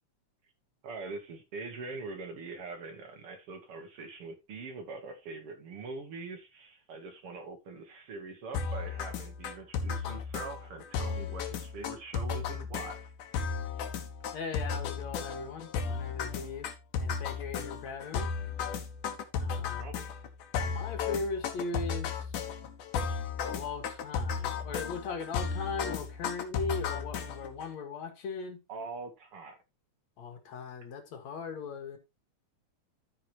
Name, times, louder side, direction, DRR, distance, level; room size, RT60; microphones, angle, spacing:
voice 1, 0.8-13.1 19.4-20.1 28.7-29.6, right 4 dB, 55° right, 1.9 m, -43 dB
sound 1, 8.5-27.6, left 6 dB, 85° left, 2.8 m, -34 dB
voice 2, 14.3-16.7 17.0-18.3 19.4-19.9 20.6-22.3 23.4-28.6 30.2-32.0, left 4 dB, 65° left, 2.8 m, -38 dB
14.0 x 5.9 x 3.0 m
omnidirectional pair, 3.5 m